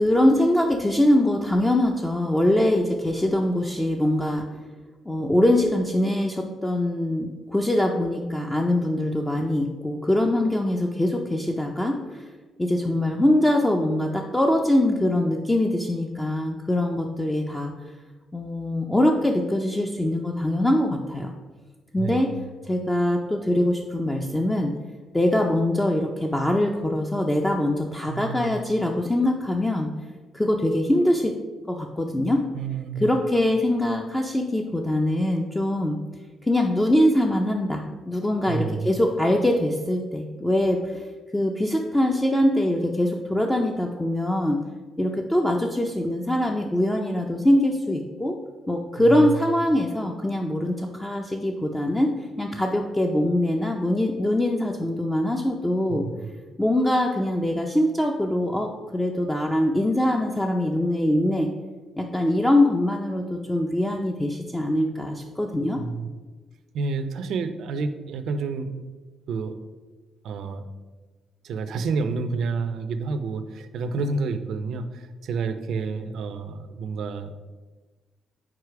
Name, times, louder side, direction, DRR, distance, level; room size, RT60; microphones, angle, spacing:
voice 1, 0.0-4.6 5.1-12.3 12.6-17.9 18.3-21.3 21.9-22.3 22.6-24.7 25.1-29.9 30.3-31.3 31.7-32.5 33.0-36.0 36.4-44.6 45.0-48.4 48.7-56.1 56.6-61.5 62.0-65.8, left 1 dB, 10° left, 1 dB, 0.5 m, -23 dB
voice 2, 22.0-22.3 28.1-28.6 32.5-33.2 38.5-38.9 49.0-49.3 55.9-56.3 65.8-66.1 66.7-68.8 69.3-69.6 70.2-70.7 71.4-77.3, right 4 dB, 75° right, 10 dB, 0.5 m, -29 dB
4.8 x 4.3 x 4.7 m, 1.3 s
cardioid pair, 90°, 0 cm